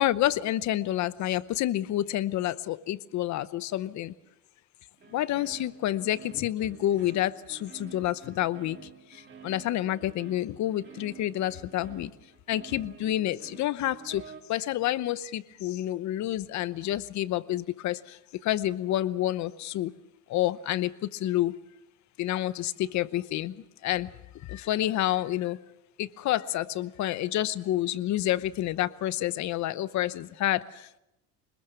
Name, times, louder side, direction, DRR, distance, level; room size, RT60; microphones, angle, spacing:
voice 1, 0.0-4.1 5.1-8.8 9.1-12.1 12.5-14.2 14.5-19.9 20.3-21.6 22.2-24.1 24.4-25.6 26.0-31.0, left 13 dB, 50° left, 16 dB, 0.9 m, -29 dB
sound 1, 5.0-14.4, right 7 dB, 30° right, 2.6 m, -50 dB
24.5 x 20.5 x 6.9 m, 0.87 s
cardioid pair, 145°, 37 cm